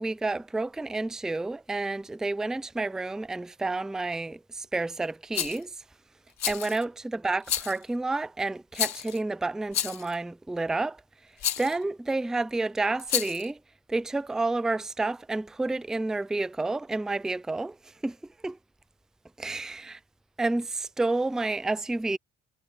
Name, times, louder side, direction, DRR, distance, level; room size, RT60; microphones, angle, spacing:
voice 1, 0.0-5.7 6.5-11.0 11.6-13.6 13.9-17.8 18.0-18.2 18.4-18.6 19.4-20.0 20.4-22.2, right 2 dB, ahead, 0.4 m, -30 dB
Rattle, 5.3-5.6 6.4-6.8 7.4-7.8 8.7-9.2 9.7-10.1 11.4-11.7 13.0-13.5, left 10 dB, 60° left, 1.6 m, -30 dB
cardioid pair, 90°, 30 cm